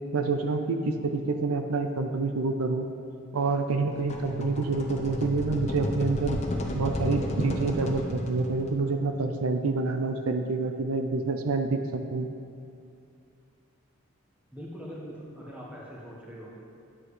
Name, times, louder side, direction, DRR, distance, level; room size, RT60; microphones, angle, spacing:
voice 1, 0.1-2.9 3.3-6.4 6.7-12.3, right 3 dB, 85° right, 6 dB, 0.5 m, -27 dB
sound 1, 3.9-8.8, left 1 dB, 30° left, 0.6 m, -33 dB
voice 2, 14.5-16.5, equal, 5° right, -5 dB, 1.2 m, -42 dB
9.8 x 7.6 x 3.2 m, 2.4 s
head